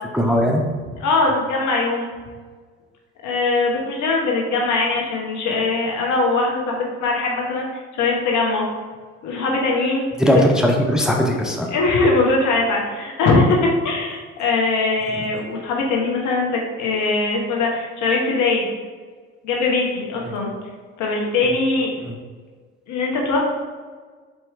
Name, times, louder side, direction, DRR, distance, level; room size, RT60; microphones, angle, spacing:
voice 1, 0.1-0.6 10.2-11.7 15.1-15.2 20.2-20.3 21.4-21.5 22.0-22.1, equal, ahead, 0 dB, 0.6 m, -19 dB
voice 2, 1.0-2.1 3.2-7.7 7.9-8.6 9.2-10.1 11.7-18.7 19.4-20.5 21.0-21.9 22.9-23.5, left 3 dB, 60° left, -1 dB, 1.1 m, -21 dB
4.4 x 3.0 x 3.6 m, 1.5 s
hypercardioid pair, 60°, 32 cm